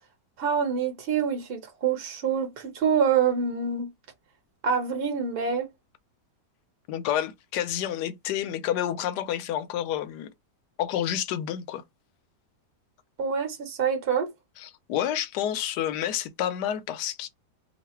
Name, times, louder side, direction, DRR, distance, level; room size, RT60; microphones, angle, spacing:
voice 1, 0.4-3.9 4.6-5.7 13.2-14.3, right 6 dB, 40° right, 1.1 m, -26 dB
voice 2, 6.9-10.3 10.8-11.8 14.6-17.3, left 10 dB, 80° left, 1.2 m, -29 dB
3.1 x 2.4 x 4.2 m
omnidirectional pair, 1.8 m